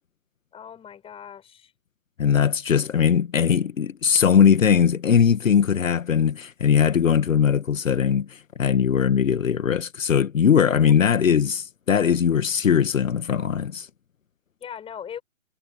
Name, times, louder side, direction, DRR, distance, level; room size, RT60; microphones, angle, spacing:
voice 1, 0.5-1.7 10.8-10.9 14.6-15.2, left 8 dB, 15° left, 6.3 m, -39 dB
voice 2, 2.2-13.9, left 7 dB, 70° left, 1.6 m, -20 dB
hypercardioid pair, 135°, 40 cm